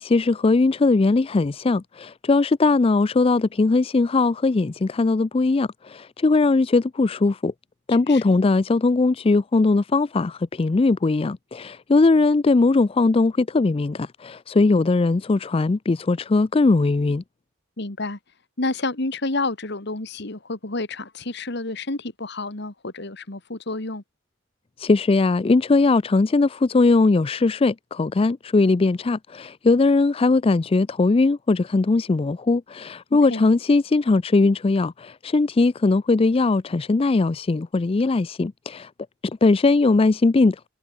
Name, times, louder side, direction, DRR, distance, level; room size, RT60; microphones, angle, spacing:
voice 1, 0.0-7.5 7.9-17.2 24.8-38.9 39.4-40.6, left 3 dB, 30° left, 0.4 m, -20 dB
voice 2, 8.1-8.4 17.8-18.2 18.6-24.0 33.3-33.4, left 2 dB, 60° left, 2.1 m, -29 dB
head